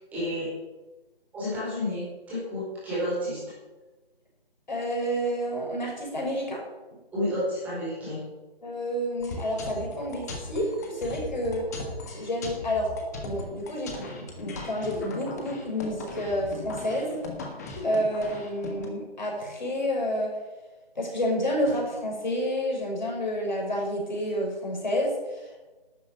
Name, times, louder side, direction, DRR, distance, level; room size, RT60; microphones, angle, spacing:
voice 1, 0.1-0.5 1.3-3.4 7.1-8.2, left 1 dB, 5° right, -10 dB, 4.8 m, -30 dB
voice 2, 4.7-6.6 8.6-11.6 12.1-12.9 13.2-17.2 17.8-20.3 21.0-25.7, equal, 50° left, -1 dB, 5.6 m, -29 dB
sound 1, 9.2-18.9, left 3 dB, 15° left, 1.5 m, -38 dB
12.0 x 9.6 x 8.8 m, 1.2 s
figure-of-eight pair, 160°, 30 cm